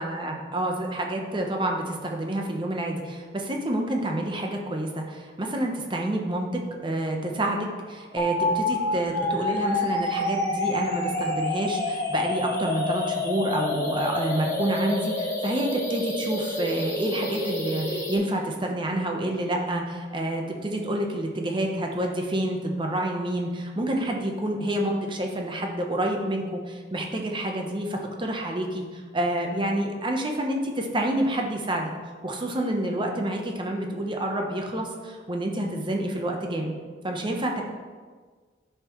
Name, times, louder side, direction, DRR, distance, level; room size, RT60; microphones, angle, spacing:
voice 1, 0.0-31.9 32.2-36.7 37.0-37.6, right 1 dB, 25° right, 1 dB, 0.8 m, -28 dB
sound 1, 8.2-18.2, left 2 dB, 15° left, 1.1 m, -28 dB
9.5 x 5.6 x 3.1 m, 1.5 s
head